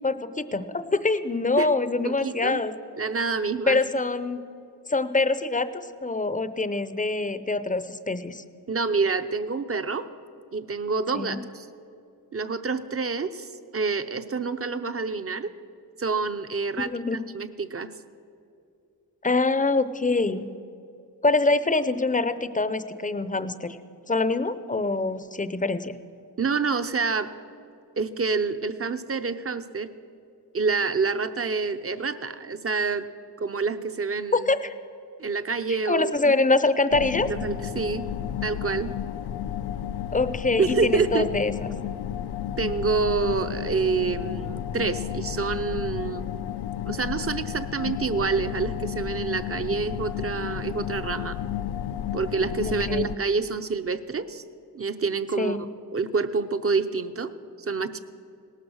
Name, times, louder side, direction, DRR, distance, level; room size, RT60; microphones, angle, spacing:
voice 1, 0.0-2.7 3.7-4.4 4.9-8.4 11.1-11.4 16.8-17.2 19.2-20.5 21.2-23.8 24.1-25.9 34.3-34.7 35.8-37.3 40.1-41.7 52.6-53.1 55.4-55.6, left 3 dB, 20° left, 13 dB, 0.6 m, -25 dB
voice 2, 2.0-2.6 3.0-3.8 8.7-10.1 10.5-11.7 12.3-15.5 16.0-16.9 17.3-17.9 26.4-27.3 28.0-29.9 30.5-33.1 33.4-34.5 35.2-36.3 37.3-38.1 38.4-38.9 40.6-41.3 42.6-46.2 46.9-51.4 52.1-54.4 54.7-55.6 55.9-57.3 57.6-58.0, right 4 dB, 35° right, 9 dB, 0.7 m, -27 dB
sound 1, 36.9-53.2, left 10 dB, 70° left, 0.5 m, -32 dB
18.0 x 12.5 x 6.3 m, 2.5 s
wide cardioid pair, 110°, 41 cm